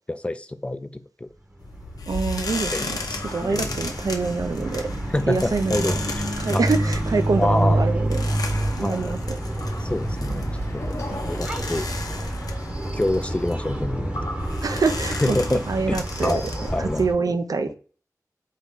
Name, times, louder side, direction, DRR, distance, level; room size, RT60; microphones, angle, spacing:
voice 1, 0.1-1.3 2.7-3.8 5.1-6.7 7.4-7.9 8.8-9.1 9.8-10.9 11.2-11.9 12.9-14.3 15.2-17.0, left 1 dB, 20° left, 11 dB, 0.4 m, -27 dB
sound 1, 1.6-17.1, left 2 dB, 80° left, 0.7 m, -35 dB
sound 2, 1.6-17.1, right 1 dB, 20° right, 0.8 m, -28 dB
voice 2, 2.1-3.0 3.2-4.9 5.3-5.9 6.4-8.3 8.7-9.4 10.3-10.4 11.1-11.2 14.6-16.4 16.8-17.7, right 4 dB, 75° right, 8 dB, 0.5 m, -25 dB
Chatter / Car passing by / Motorcycle, 8.1-13.5, left 1 dB, 55° left, 0.9 m, -40 dB
4.2 x 3.0 x 3.7 m, 0.38 s
wide cardioid pair, 75°, 6 cm